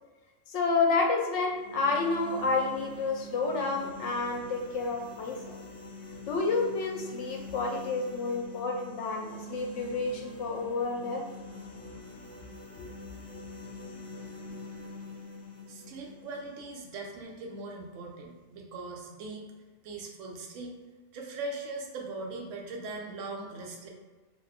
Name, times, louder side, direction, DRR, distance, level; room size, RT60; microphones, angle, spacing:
voice 1, 0.5-5.4 6.3-11.3 12.8-12.9 13.3-13.4, left 4 dB, 75° left, 1 dB, 0.9 m, -30 dB
sound 1, 1.4-17.4, equal, 40° right, 0.8 m, -45 dB
voice 2, 15.7-19.4 19.8-20.7 21.1-23.9, right 3 dB, 90° right, 0 dB, 1.0 m, -40 dB
2.6 x 2.3 x 3.4 m, 1.3 s
omnidirectional pair, 1.3 m